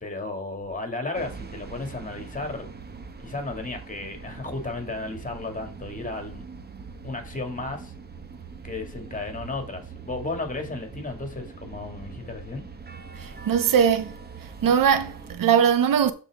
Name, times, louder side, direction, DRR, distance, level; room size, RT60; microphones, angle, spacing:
voice 1, 0.0-2.7 3.2-6.4 7.0-7.9 8.6-12.6, left 3 dB, 25° left, 2.2 m, -34 dB
sound 1, 1.1-15.4, right 5 dB, 30° right, 1.1 m, -42 dB
voice 2, 13.2-14.1 14.4-16.1, right 8 dB, 70° right, 0.9 m, -21 dB
12.5 x 4.3 x 3.6 m
cardioid pair, 100°, 35 cm